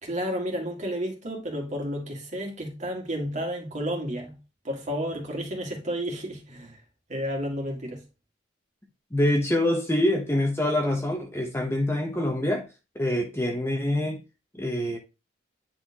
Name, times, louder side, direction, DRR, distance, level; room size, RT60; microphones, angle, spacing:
voice 1, 0.0-4.4 4.6-6.8 7.1-8.0, equal, 40° right, 2.1 m, -31 dB
voice 2, 9.1-12.7 12.9-14.2 14.6-15.0, left 1 dB, 15° left, 0.9 m, -25 dB
9.5 x 4.3 x 2.9 m
head